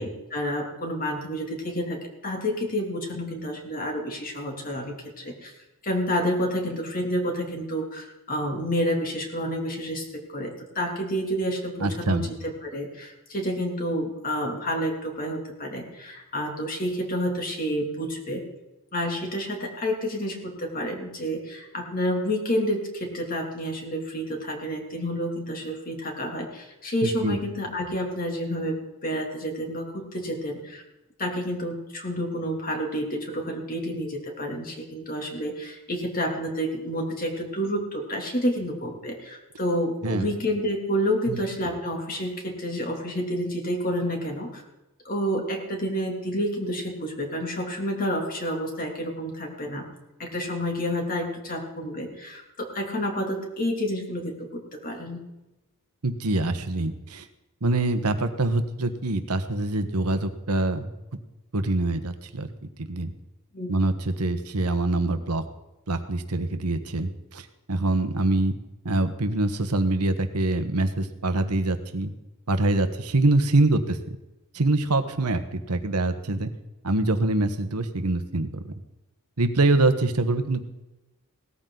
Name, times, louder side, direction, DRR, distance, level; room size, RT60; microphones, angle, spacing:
voice 1, 0.0-5.5 5.8-18.4 18.9-30.8 31.2-44.6 45.0-49.9 50.2-55.2 63.5-63.8, equal, 40° left, 1 dB, 2.9 m, -29 dB
voice 2, 11.8-12.2 27.0-27.4 40.0-40.3 41.3-41.4 56.0-57.3 57.6-60.9 61.5-62.5 62.8-63.1 63.7-65.4 65.9-68.5 68.8-72.1 72.5-74.2 74.5-76.5 76.8-78.6 79.4-80.6, right 2 dB, 90° right, 9 dB, 1.3 m, -24 dB
18.0 x 13.5 x 4.0 m, 1.0 s
head